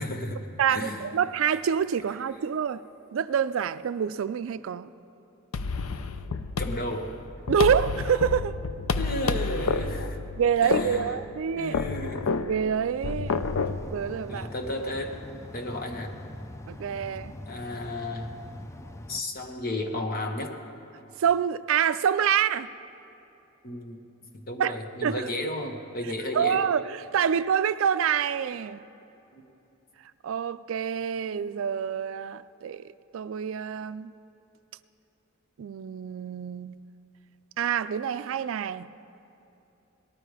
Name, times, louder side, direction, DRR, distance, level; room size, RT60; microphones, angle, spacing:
voice 1, 0.0-1.0 6.6-7.1 9.0-10.2 10.6-11.1 11.6-12.3 14.3-15.2 15.5-16.1 17.5-18.3 19.1-20.5 23.6-24.0 24.5-26.7 29.3-29.5, left 1 dB, 45° left, 1.2 m, -33 dB
voice 2, 0.6-2.8 3.1-4.9 7.5-8.6 10.4-11.8 12.4-13.4 13.9-14.5 16.7-17.4 21.2-22.7 24.6-24.7 25.0-25.3 26.3-28.8 30.2-34.1 35.6-36.8 37.6-38.9, right 8 dB, 70° right, 0.3 m, -27 dB
sound 1, 5.5-13.8, left 4 dB, 90° left, 0.5 m, -30 dB
sound 2, 13.3-19.2, left 1 dB, 15° left, 0.4 m, -43 dB
18.5 x 12.0 x 4.9 m
head